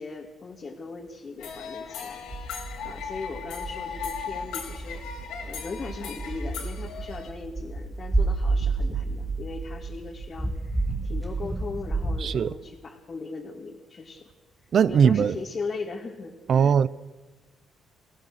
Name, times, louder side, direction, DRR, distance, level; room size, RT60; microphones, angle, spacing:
voice 1, 0.0-2.3 2.6-14.3 14.9-16.7, left 4 dB, 40° left, 2.7 m, -38 dB
sound 1, 1.4-7.3, left 7 dB, 85° left, 4.1 m, -37 dB
sound 2, 2.3-12.2, right 3 dB, 10° right, 2.1 m, -30 dB
voice 2, 12.2-12.5 14.7-15.4 16.5-16.9, right 7 dB, 55° right, 0.6 m, -20 dB
24.0 x 17.5 x 6.6 m
cardioid pair, 85°, 0 cm